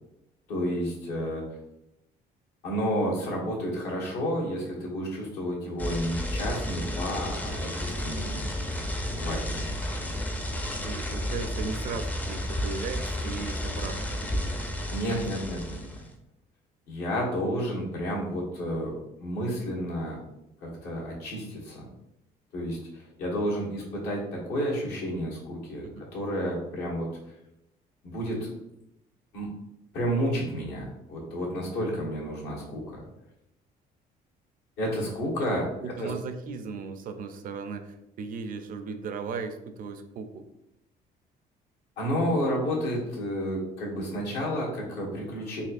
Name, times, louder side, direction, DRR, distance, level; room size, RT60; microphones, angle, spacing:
voice 1, 0.5-1.4 2.6-8.5 9.1-9.6 14.9-15.8 16.9-20.2 20.6-21.9 22.5-27.1 28.0-28.5 29.3-29.5 29.9-33.0 34.8-36.1 42.0-45.6, equal, 80° left, -4 dB, 1.4 m, -31 dB
sound 1, 5.8-16.1, left 1 dB, 10° left, 0.4 m, -32 dB
voice 2, 10.8-14.5 25.8-26.1 35.4-35.5 35.8-40.4, right 5 dB, 55° right, 8 dB, 0.4 m, -37 dB
4.1 x 2.7 x 2.5 m, 0.85 s
cardioid pair, 110°, 17 cm